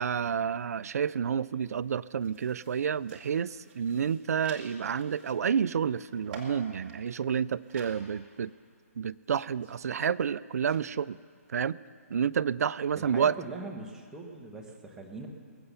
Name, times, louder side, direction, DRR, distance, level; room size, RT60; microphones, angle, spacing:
voice 1, 0.0-8.5 9.0-11.2 11.5-11.8 12.1-13.4, right 7 dB, 80° right, 17 dB, 0.3 m, -29 dB
sound 1, 1.5-8.0 8.3-8.4 9.2-10.8, right 4 dB, 40° right, 2.4 m, -51 dB
voice 2, 12.9-15.3, right 3 dB, 5° right, 0 dB, 1.2 m, -41 dB
21.5 x 7.8 x 6.9 m, 2.1 s
hypercardioid pair, 160°, 8 cm